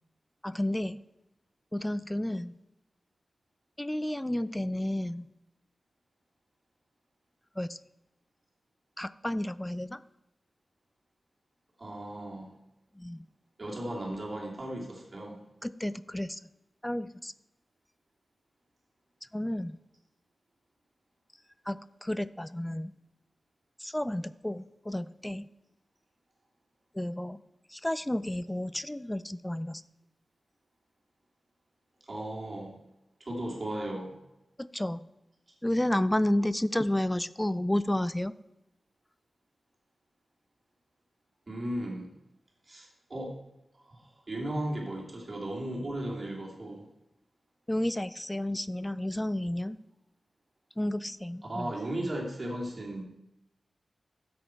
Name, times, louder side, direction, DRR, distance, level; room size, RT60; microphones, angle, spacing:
voice 1, 0.4-1.0 1.7-2.5 3.8-5.3 7.6-7.8 9.0-10.0 13.0-13.3 15.6-16.5 16.8-17.3 19.3-19.8 21.7-22.9 23.8-25.5 26.9-27.4 27.7-29.8 34.6-35.0 35.6-38.3 47.7-49.8 50.8-51.7, left 1 dB, 10° left, 16 dB, 0.4 m, -31 dB
voice 2, 11.8-12.5 13.6-15.4 32.0-32.8 33.2-34.2 41.5-42.1 42.7-43.4 43.9-46.9 51.5-53.0, right 1 dB, 35° right, -2 dB, 2.8 m, -36 dB
13.0 x 7.8 x 4.6 m, 0.90 s
wide cardioid pair, 140°, 0 cm